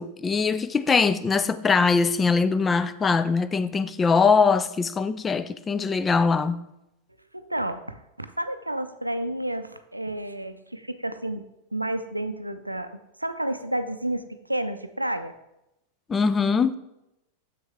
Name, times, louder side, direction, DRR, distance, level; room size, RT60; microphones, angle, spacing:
voice 1, 0.0-6.6 16.1-16.7, left 5 dB, 20° left, 0.3 m, -22 dB
voice 2, 7.3-11.4 11.7-15.3, right 1 dB, 85° right, 0.4 m, -31 dB
7.4 x 6.1 x 3.5 m
figure-of-eight pair, 90°, 0 cm